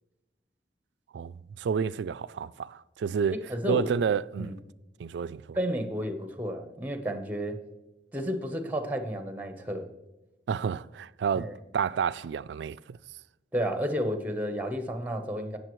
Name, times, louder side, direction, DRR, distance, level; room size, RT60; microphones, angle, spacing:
voice 1, 1.1-3.4 3.7-4.5 5.0-5.6 10.5-13.0, right 6 dB, 85° right, 0.3 m, -30 dB
voice 2, 3.5-3.9 4.4-4.6 5.5-7.6 8.1-9.9 11.4-11.5 13.5-15.6, equal, 10° right, 0.9 m, -31 dB
16.5 x 6.9 x 3.1 m
head